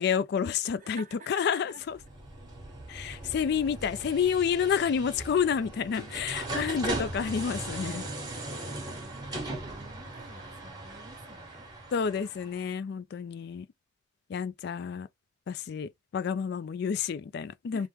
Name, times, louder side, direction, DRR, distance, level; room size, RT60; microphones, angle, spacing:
voice 1, 0.0-2.0 2.9-8.0 11.9-13.7 14.3-15.1 15.5-17.9, left 7 dB, 55° left, 0.3 m, -29 dB
voice 2, 0.8-1.8 2.4-2.5 2.8-3.2 4.6-4.7 6.0-6.7 8.5-11.7 17.7-17.9, right 3 dB, 40° right, 1.0 m, -51 dB
sound 1, 1.9-12.6, right 2 dB, 20° right, 1.2 m, -39 dB
3.4 x 2.1 x 2.9 m
head